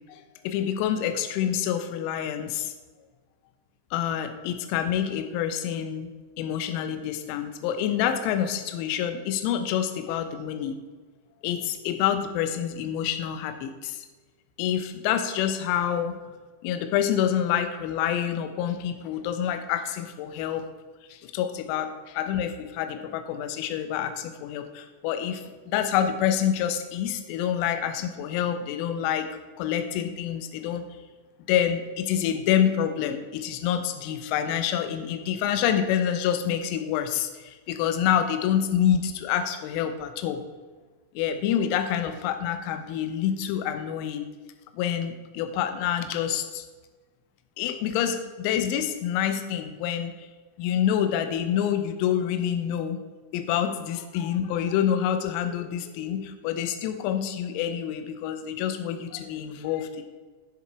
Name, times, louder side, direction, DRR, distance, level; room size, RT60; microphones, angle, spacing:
voice 1, 0.1-2.7 3.9-6.1 6.4-10.7 11.4-14.0 14.6-16.2 16.6-20.7 21.1-29.3 29.6-30.8 31.5-40.4 41.1-44.2 44.7-46.6 47.6-50.1 50.6-53.0 53.3-60.0, left 9 dB, 45° left, 9 dB, 1.0 m, -27 dB
11.0 x 7.2 x 4.6 m, 1.3 s
figure-of-eight pair, 90°, 0 cm